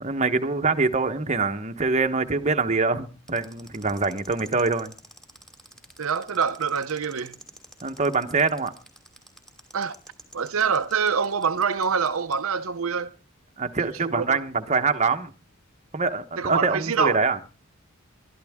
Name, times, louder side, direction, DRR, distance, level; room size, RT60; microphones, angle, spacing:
voice 1, 0.0-4.9 7.8-8.7 13.6-15.3 15.9-17.4, right 4 dB, 35° right, 1.1 m, -24 dB
sound 1, 3.3-12.3, right 1 dB, 5° left, 2.8 m, -48 dB
voice 2, 6.0-7.4 9.7-10.0 10.3-13.1 13.8-14.4 16.4-17.2, right 6 dB, 80° right, 0.7 m, -25 dB
22.5 x 13.0 x 3.6 m
head